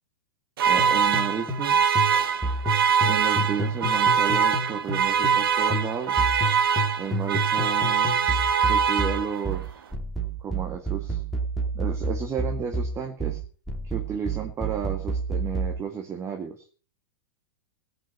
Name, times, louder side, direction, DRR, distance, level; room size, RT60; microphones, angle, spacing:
voice 1, 0.6-1.8 3.0-6.3 7.0-8.1 8.6-9.8 10.4-11.2 11.7-13.4 13.8-16.7, right 7 dB, 25° right, 3 dB, 2.1 m, -32 dB
sound 1, 0.6-9.6, right 7 dB, 75° right, 1.8 m, -23 dB
sound 2, 0.8-5.4 5.7-15.8, right 2 dB, ahead, 3.5 m, -29 dB
16.5 x 6.4 x 8.3 m, 0.41 s
hypercardioid pair, 120°, 12 cm